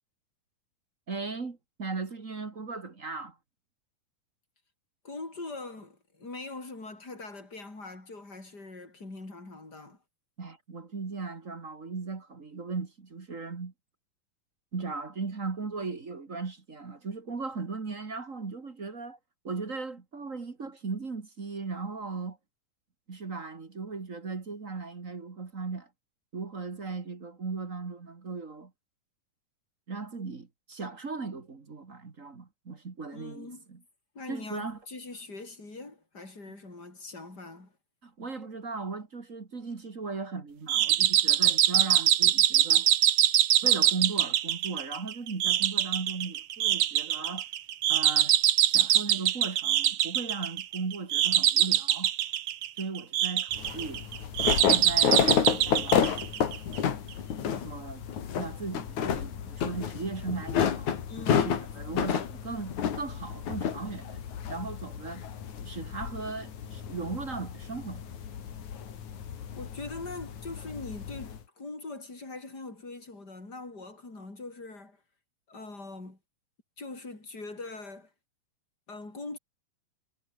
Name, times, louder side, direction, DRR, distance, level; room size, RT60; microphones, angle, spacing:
voice 1, 1.1-3.4 10.4-13.7 14.7-19.2 19.4-22.4 23.1-25.9 26.3-28.7 29.9-33.8 34.3-34.8 38.0-42.9 43.6-47.5 47.9-48.4 48.7-52.1 52.8-54.0 54.7-56.1 57.3-58.1 58.4-61.0 61.3-64.2 64.5-65.3 65.6-68.2, right 4 dB, 30° right, 1.6 m, -37 dB
voice 2, 5.0-10.0 33.1-33.6 34.1-37.7 61.1-61.5 69.6-75.0 75.5-76.2 76.8-78.1 78.9-79.4, left 3 dB, 25° left, 7.5 m, -42 dB
sound 1, 40.7-56.8, right 11 dB, 65° right, 1.5 m, -24 dB
sound 2, 53.5-71.4, left 8 dB, 55° left, 3.6 m, -31 dB
omnidirectional pair, 4.1 m